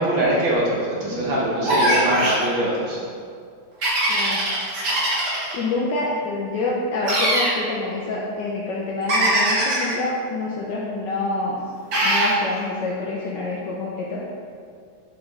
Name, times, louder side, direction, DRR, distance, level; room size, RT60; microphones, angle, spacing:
voice 1, 0.0-3.0, right 1 dB, 75° right, -5 dB, 1.8 m, -22 dB
sound 1, 1.6-2.4 3.8-5.5 7.0-7.5 9.1-9.9 11.9-12.3, right 1 dB, 60° right, 2.0 m, -21 dB
voice 2, 4.1-4.4 5.3-11.6 12.0-14.3, left 2 dB, 70° left, -4 dB, 1.3 m, -27 dB
6.4 x 4.9 x 4.1 m, 2.3 s
omnidirectional pair, 2.2 m